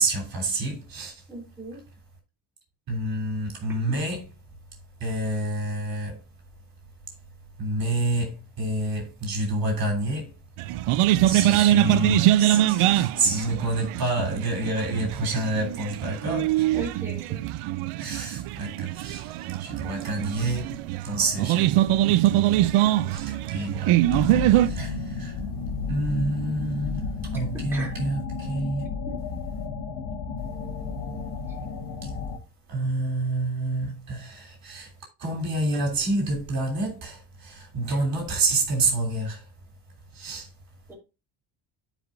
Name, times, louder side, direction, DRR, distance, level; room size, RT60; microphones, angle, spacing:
voice 1, 0.0-1.1 2.9-4.3 5.0-6.2 7.6-10.4 11.2-16.7 18.0-21.7 23.0-25.4 25.9-28.8 32.7-34.9 35.2-39.5 40.1-40.5, right 2 dB, 45° right, 3.3 m, -28 dB
voice 2, 1.3-1.8 3.7-4.0 16.7-17.4 27.7-27.9 29.1-29.2 37.9-38.0 40.9-41.0, right 2 dB, 5° right, 3.0 m, -37 dB
sound 1, 10.6-24.7, right 14 dB, 85° right, 0.6 m, -23 dB
sound 2, 24.0-32.4, left 4 dB, 85° left, 1.9 m, -32 dB
14.0 x 5.0 x 2.6 m
cardioid pair, 170°, 49 cm